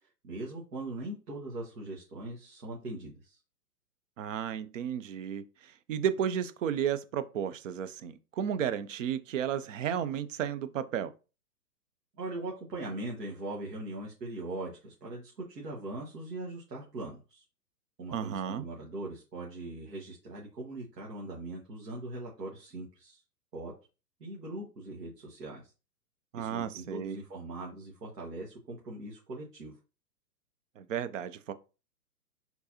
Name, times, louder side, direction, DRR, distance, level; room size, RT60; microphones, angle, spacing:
voice 1, 0.0-3.4 12.2-17.4 18.0-23.2 23.5-23.7 24.2-25.7 26.3-29.8, right 2 dB, 80° right, 1.7 m, -40 dB
voice 2, 4.2-11.1 18.1-18.6 26.3-27.2 30.8-31.5, right 9 dB, 55° right, 0.6 m, -33 dB
4.5 x 4.0 x 2.8 m
hypercardioid pair, 135°, 48 cm